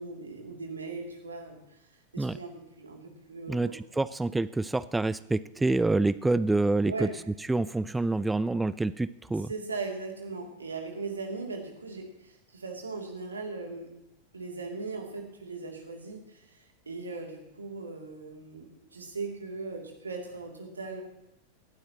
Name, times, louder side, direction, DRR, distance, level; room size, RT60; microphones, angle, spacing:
voice 1, 0.0-1.6 2.1-3.7 6.9-7.2 9.5-13.9 14.3-21.0, right 3 dB, 75° right, 1 dB, 2.8 m, -39 dB
voice 2, 3.5-7.1 7.5-9.5, right 2 dB, 5° right, 16 dB, 0.4 m, -27 dB
19.0 x 12.0 x 3.0 m, 0.85 s
figure-of-eight pair, 90°, 0 cm